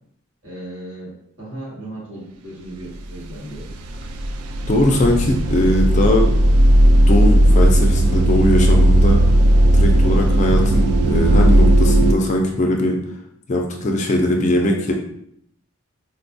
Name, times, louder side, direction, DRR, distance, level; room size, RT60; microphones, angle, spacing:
voice 1, 0.4-3.7, right 1 dB, 65° right, -6 dB, 1.5 m, -36 dB
sound 1, 3.1-3.3 3.5-12.1, right 1 dB, 80° right, 0.3 m, -15 dB
voice 2, 4.7-6.3 7.1-9.2 9.7-13.0 13.5-14.9, left 1 dB, 35° left, 1 dB, 0.3 m, -20 dB
4.0 x 2.2 x 2.5 m, 0.71 s
head